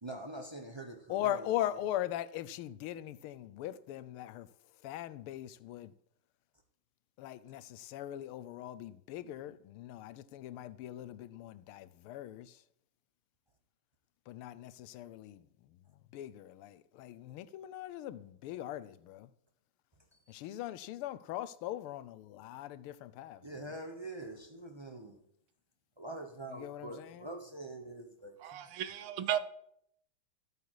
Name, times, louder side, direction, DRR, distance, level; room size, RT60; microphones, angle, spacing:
voice 1, 0.0-1.5 20.3-20.4 23.4-25.2 26.0-28.6, right 2 dB, 35° right, 0.4 m, -45 dB
voice 2, 1.1-4.5 4.8-5.9 7.2-12.6 14.3-15.4 16.1-19.3 20.3-23.4 26.5-27.3, left 13 dB, 85° left, 1.5 m, -40 dB
voice 3, 28.4-29.4, right 11 dB, 85° right, 1.7 m, -34 dB
14.0 x 8.2 x 4.7 m
omnidirectional pair, 2.4 m